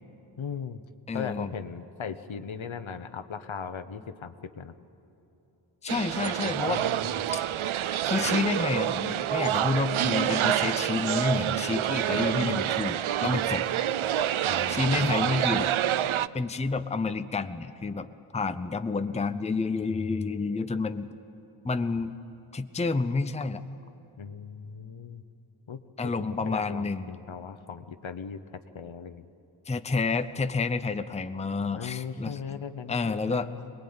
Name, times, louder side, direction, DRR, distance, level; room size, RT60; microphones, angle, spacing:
voice 1, 0.4-0.8 1.1-4.7 6.7-7.3 14.4-15.1 24.2-25.2 25.7-28.4 28.7-29.3 31.7-33.7, left 6 dB, 65° left, 10 dB, 1.1 m, -38 dB
voice 2, 1.1-1.5 5.8-6.8 7.3-7.4 8.0-13.7 14.7-15.7 16.3-21.1 21.6-22.1 22.5-23.6 26.0-27.1 29.7-32.6 32.9-33.5, left 4 dB, 15° left, 9 dB, 0.6 m, -29 dB
sound 1, 5.9-16.3, right 11 dB, 75° right, 0.6 m, -27 dB
23.0 x 20.5 x 8.8 m, 3.0 s
wide cardioid pair, 80°, 50 cm